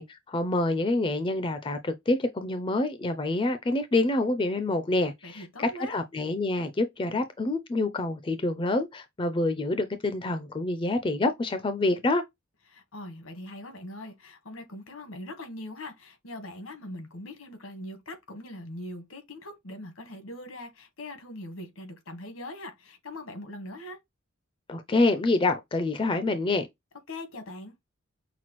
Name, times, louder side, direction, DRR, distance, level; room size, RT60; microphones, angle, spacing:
voice 1, 0.0-12.2 24.7-26.7, left 2 dB, 25° left, 0.4 m, -27 dB
voice 2, 5.2-6.0 12.7-24.0 27.1-27.7, left 1 dB, 80° left, 1.4 m, -41 dB
5.9 x 2.3 x 3.0 m
head